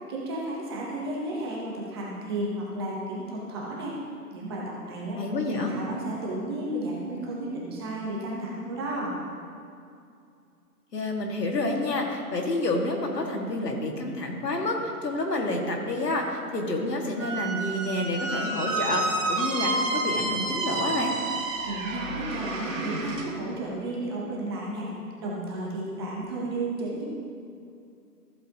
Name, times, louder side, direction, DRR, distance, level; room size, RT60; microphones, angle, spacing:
voice 1, 0.1-4.0 4.3-5.2 5.5-9.2 21.6-24.9 25.2-27.1, right 1 dB, 15° right, -4 dB, 0.9 m, -33 dB
voice 2, 5.2-5.7 10.9-21.1, left 2 dB, 80° left, 1 dB, 2.0 m, -29 dB
Squeak, 17.2-23.3, right 2 dB, 50° right, 2.0 m, -30 dB
14.0 x 8.2 x 2.9 m, 2.5 s
hypercardioid pair, 150°, 48 cm